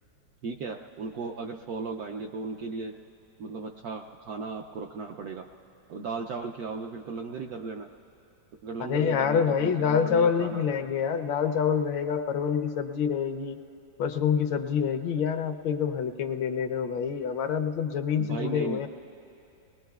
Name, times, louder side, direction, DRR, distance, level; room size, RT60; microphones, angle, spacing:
voice 1, 0.4-2.9 3.4-5.5 5.9-7.9 8.6-10.6 18.2-18.9, right 4 dB, 75° right, 2 dB, 0.8 m, -36 dB
voice 2, 8.8-13.6 14.0-18.9, left 7 dB, 80° left, 7 dB, 1.4 m, -26 dB
28.0 x 20.5 x 2.3 m, 2.8 s
omnidirectional pair, 2.1 m